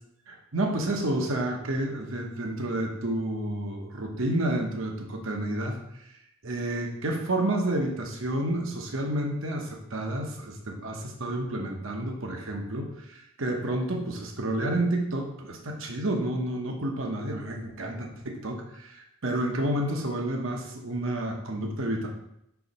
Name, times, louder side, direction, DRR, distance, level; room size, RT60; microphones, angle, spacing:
voice 1, 0.3-6.1 6.4-22.1, right 1 dB, 65° right, 1 dB, 1.0 m, -30 dB
5.6 x 4.6 x 5.4 m, 0.80 s
head